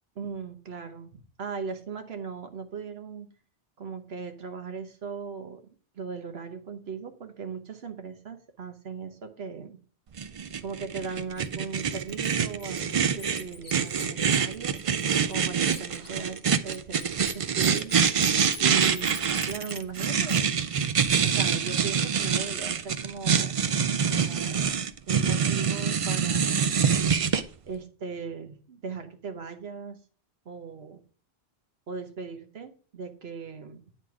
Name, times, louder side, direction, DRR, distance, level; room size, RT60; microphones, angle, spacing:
voice 1, 0.2-3.3 3.8-9.8 10.6-14.8 15.3-18.0 18.6-20.5 21.2-23.6 24.0-24.7 25.1-26.7 27.6-30.0 30.4-31.0 31.9-33.8, right 5 dB, 75° right, 6 dB, 1.2 m, -38 dB
sound 1, 10.2-27.4, right 7 dB, 50° right, 0.4 m, -25 dB
Bird, 11.4-11.5 11.9-15.4 15.6-20.4, left 3 dB, 25° left, 0.9 m, -43 dB
9.4 x 4.1 x 4.7 m, 0.43 s
omnidirectional pair, 1.1 m